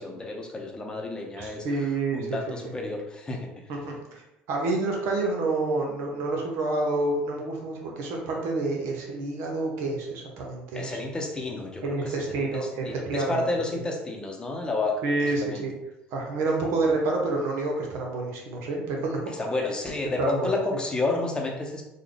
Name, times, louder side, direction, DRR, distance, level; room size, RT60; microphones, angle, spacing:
voice 1, 0.0-1.6 2.1-3.7 10.7-11.8 12.2-15.0 15.4-15.7 19.3-21.8, left 2 dB, 20° left, 1 dB, 0.8 m, -30 dB
voice 2, 1.4-2.4 3.7-4.2 4.5-11.0 11.8-13.4 15.0-15.7 16.1-19.2 20.2-20.5, right 2 dB, 70° right, 0 dB, 0.9 m, -28 dB
3.7 x 2.3 x 3.3 m, 0.89 s
supercardioid pair, 85°, 4 cm